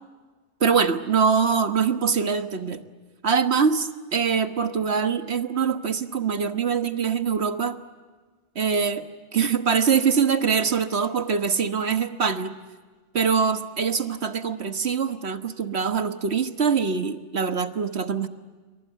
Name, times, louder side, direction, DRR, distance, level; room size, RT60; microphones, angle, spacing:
voice 1, 0.6-2.8 3.2-7.8 8.5-12.5 13.1-18.3, right 6 dB, 80° right, 9 dB, 1.6 m, -23 dB
29.5 x 24.0 x 8.3 m, 1.4 s
omnidirectional pair, 1.1 m